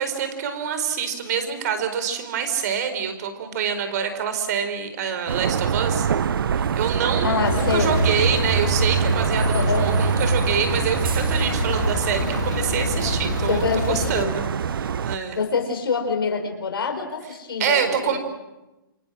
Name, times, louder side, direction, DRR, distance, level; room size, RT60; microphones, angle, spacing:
voice 1, 0.0-6.1 6.5-14.5 14.8-15.4 17.6-18.2, right 7 dB, 50° right, 8 dB, 4.4 m, -26 dB
sound 1, 5.3-15.2, right 7 dB, 75° right, 0.9 m, -24 dB
voice 2, 7.2-8.0 9.5-10.0 13.5-14.3 15.3-18.2, left 4 dB, 90° left, 3 dB, 4.5 m, -25 dB
Male speech man speaking / Car / Idling, 7.4-14.2, left 10 dB, 50° left, 1.0 m, -29 dB
28.0 x 25.5 x 6.4 m, 1.0 s
hypercardioid pair, 150°, 12 cm